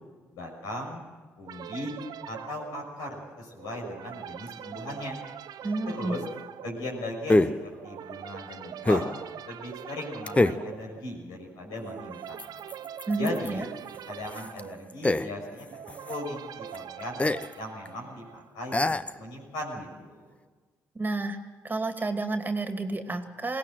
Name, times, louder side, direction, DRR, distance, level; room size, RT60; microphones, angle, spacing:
voice 1, 0.3-1.0 1.4-1.9 2.3-5.2 5.9-6.2 6.6-9.1 9.4-12.5 13.2-13.6 14.1-17.2 17.6-20.3, left 1 dB, 75° left, 0 dB, 6.4 m, -38 dB
sound 1, 1.5-18.7, right 10 dB, 65° right, 0.9 m, -43 dB
sound 2, 4.5-4.6 7.3-7.7 8.8-9.2 10.3-10.7 12.4-13.6 13.9-14.0 14.3-15.6 15.9-16.2 16.7-16.8 17.2-17.5 17.9-18.0 18.7-19.2, left 2 dB, 20° left, 0.9 m, -25 dB
voice 2, 5.6-6.1 13.1-13.7 20.9-21.4 21.6-23.6, right 3 dB, 25° right, 7 dB, 2.3 m, -30 dB
22.0 x 17.5 x 7.8 m, 1.4 s
hypercardioid pair, 50°, 7 cm